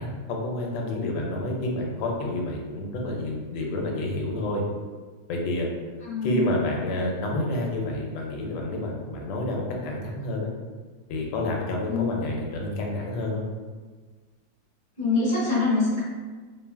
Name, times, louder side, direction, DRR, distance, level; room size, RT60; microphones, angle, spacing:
voice 1, 0.0-4.6 5.3-5.7 6.2-10.5 11.1-13.4, left 2 dB, 75° left, 0 dB, 1.2 m, -29 dB
voice 2, 6.0-6.4 11.9-12.1 15.0-16.0, left 3 dB, 40° left, -10 dB, 0.7 m, -24 dB
3.2 x 2.2 x 2.2 m, 1.4 s
omnidirectional pair, 2.1 m